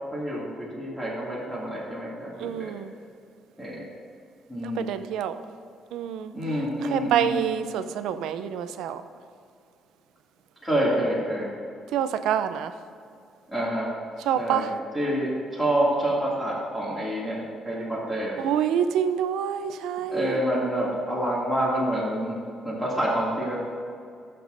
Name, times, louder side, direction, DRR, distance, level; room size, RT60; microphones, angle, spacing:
voice 1, 0.1-2.7 3.6-3.8 4.5-4.9 6.3-7.4 10.6-11.5 13.5-13.9 14.4-18.4 20.1-22.4 22.6-23.6, right 1 dB, 5° left, -7 dB, 2.4 m, -27 dB
voice 2, 2.4-2.9 4.6-5.4 5.9-6.3 6.8-9.0 11.9-12.7 14.3-14.7 18.4-20.4, right 9 dB, 85° right, 10 dB, 0.5 m, -27 dB
17.0 x 6.8 x 2.6 m, 2.4 s
cardioid pair, 105°, 0 cm